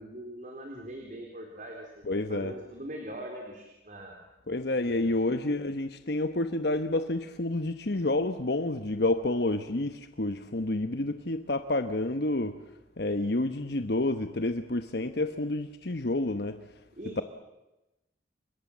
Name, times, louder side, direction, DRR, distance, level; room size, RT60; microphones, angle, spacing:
voice 1, 0.0-4.1 4.9-5.1 17.0-17.2, right 1 dB, 45° right, 1 dB, 4.1 m, -42 dB
voice 2, 2.0-2.5 4.5-12.6 13.0-16.6, left 2 dB, 60° left, 9 dB, 1.1 m, -29 dB
29.5 x 24.5 x 7.4 m, 0.98 s
head